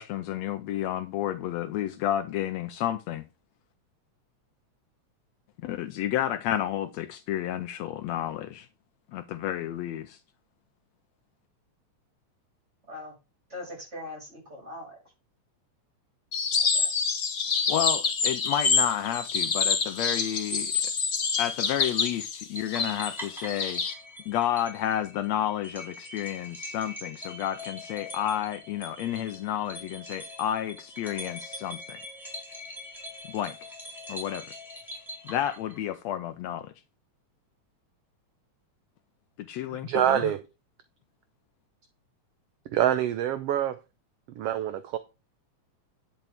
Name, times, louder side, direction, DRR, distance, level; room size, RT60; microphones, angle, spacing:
voice 1, 0.0-3.2 5.6-8.7 9.1-10.2 17.7-20.9 21.4-23.8 24.3-32.0 33.3-33.6 34.1-34.4 35.2-36.7 39.4-40.2, left 11 dB, 75° left, 1.8 m, -31 dB
voice 2, 13.5-15.0 16.6-16.9, left 1 dB, 20° right, 6.6 m, -41 dB
sound 1, 16.3-23.9, left 5 dB, 45° left, 1.0 m, -27 dB
sound 2, 22.5-36.0, left 1 dB, ahead, 4.4 m, -43 dB
voice 3, 39.7-40.4 42.7-43.8 44.4-45.0, right 11 dB, 70° right, 1.6 m, -26 dB
11.0 x 8.8 x 3.5 m
omnidirectional pair, 3.3 m